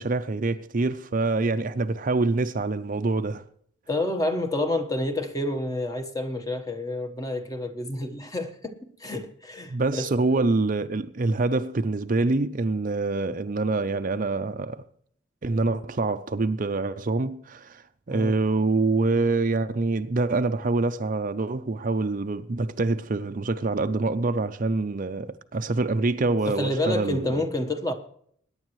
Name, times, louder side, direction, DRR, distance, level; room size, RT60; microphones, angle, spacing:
voice 1, 0.0-3.4 9.7-14.8 15.4-27.5, right 3 dB, 40° right, 0.5 m, -25 dB
voice 2, 3.9-10.4 18.1-18.3 26.4-27.9, left 1 dB, 20° left, 1.2 m, -29 dB
21.5 x 9.8 x 3.1 m
head